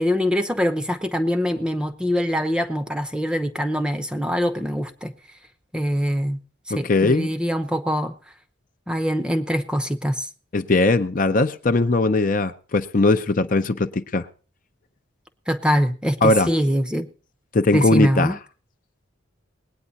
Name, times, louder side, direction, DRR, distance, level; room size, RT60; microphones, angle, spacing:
voice 1, 0.0-5.1 5.7-6.4 6.7-8.1 8.9-10.3 15.5-17.1 17.7-18.4, equal, 5° right, 0.7 m, -23 dB
voice 2, 6.7-7.3 10.5-14.3 16.2-16.5 17.5-18.3, left 2 dB, 40° left, 0.6 m, -19 dB
20.0 x 9.1 x 4.1 m
head